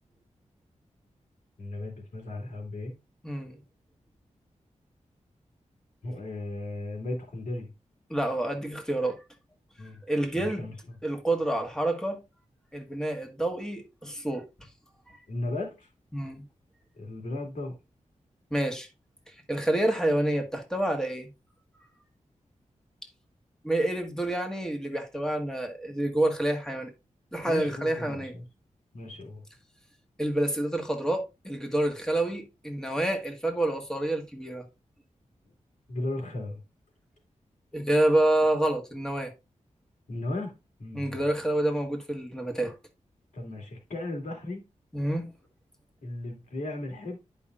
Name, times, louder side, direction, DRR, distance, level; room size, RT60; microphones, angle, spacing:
voice 1, 1.6-2.9 6.0-7.7 9.8-10.0 10.3-10.7 15.3-15.9 17.0-17.8 27.5-28.4 28.9-29.4 35.9-36.6 40.1-40.5 40.8-41.2 43.3-44.6 46.0-47.2, left 2 dB, 90° left, 2.7 m, -35 dB
voice 2, 3.2-3.6 8.1-9.2 10.1-10.6 11.0-12.2 12.7-14.4 15.1-15.2 16.1-16.4 18.5-18.9 19.5-21.3 23.6-26.9 27.3-28.3 30.2-34.6 37.7-39.3 40.9-42.7 44.9-45.3, right 1 dB, 5° left, 1.6 m, -28 dB
11.0 x 5.5 x 2.5 m
wide cardioid pair, 100°, 13 cm